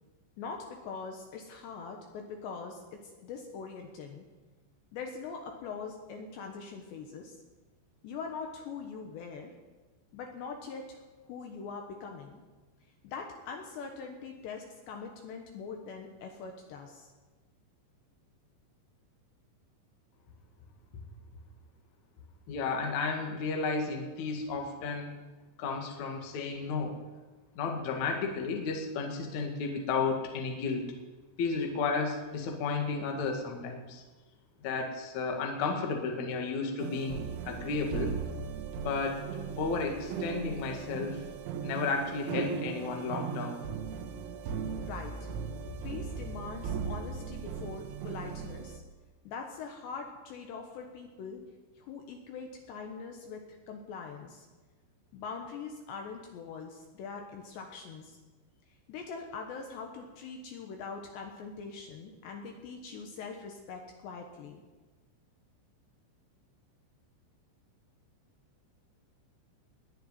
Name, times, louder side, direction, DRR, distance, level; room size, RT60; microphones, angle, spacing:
voice 1, 0.4-4.2 4.9-7.4 8.0-9.6 10.1-11.0 11.3-12.4 13.0-17.1 44.8-45.3 45.8-48.8 49.2-51.4 51.8-54.5 55.1-58.2 58.9-64.6, left 5 dB, 70° left, 2 dB, 3.1 m, -42 dB
voice 2, 22.5-25.1 25.6-27.0 27.6-30.9 31.4-34.0 34.6-38.1 38.8-39.2 39.6-41.2 41.6-43.6, left 4 dB, 50° left, 2 dB, 2.4 m, -33 dB
sound 1, 36.8-48.8, right 6 dB, 90° right, 3.9 m, -38 dB
20.5 x 6.9 x 9.5 m, 1.3 s
omnidirectional pair, 5.9 m